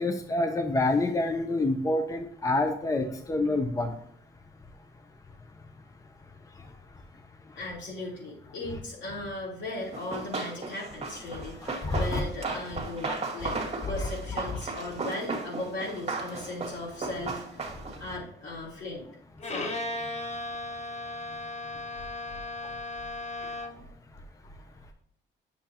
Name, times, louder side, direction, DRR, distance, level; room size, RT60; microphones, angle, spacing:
voice 1, 0.0-4.0 6.6-6.7 7.5-7.6 11.6-12.2 12.5-12.6 13.1-13.2 13.8-14.1 14.5-14.6 17.8-18.0 23.4-23.7, left 2 dB, 15° left, 6 dB, 0.7 m, -28 dB
voice 2, 7.6-13.6 13.9-19.1 19.5-20.2, left 2 dB, 65° left, -3 dB, 3.5 m, -37 dB
Run, 9.9-18.1, right 3 dB, 30° right, 1.8 m, -36 dB
Bowed string instrument, 19.4-23.9, left 2 dB, 35° left, 1.0 m, -36 dB
8.2 x 6.9 x 2.9 m, 0.64 s
cardioid pair, 90°, 20 cm